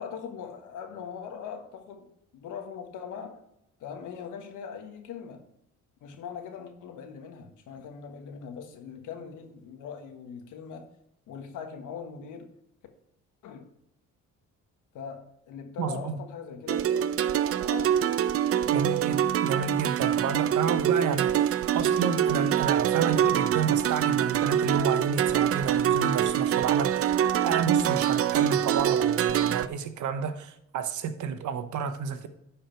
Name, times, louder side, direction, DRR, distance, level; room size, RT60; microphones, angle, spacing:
voice 1, 0.0-3.4 3.8-5.4 6.0-10.9 11.3-12.5 13.4-13.7 14.9-18.1 18.6-19.1, left 7 dB, 85° left, 1.5 m, -41 dB
voice 2, 15.8-16.2 18.7-27.1 27.4-32.3, right 6 dB, 75° right, 1.0 m, -30 dB
sound 1, 16.7-29.7, right 10 dB, 50° right, 0.5 m, -25 dB
10.5 x 5.0 x 4.6 m
cardioid pair, 90°, 30 cm